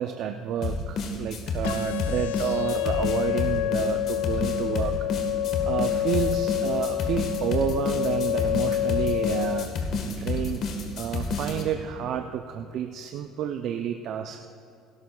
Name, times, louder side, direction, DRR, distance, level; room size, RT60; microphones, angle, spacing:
voice 1, 0.0-4.9 5.6-10.6 11.0-14.4, right 9 dB, 65° right, 6 dB, 0.5 m, -30 dB
sound 1, 0.6-11.6, left 3 dB, 60° left, 1.4 m, -30 dB
sound 2, 1.6-9.6, left 14 dB, 85° left, 0.3 m, -28 dB
17.0 x 12.5 x 2.3 m, 2.3 s
supercardioid pair, 75°, 0 cm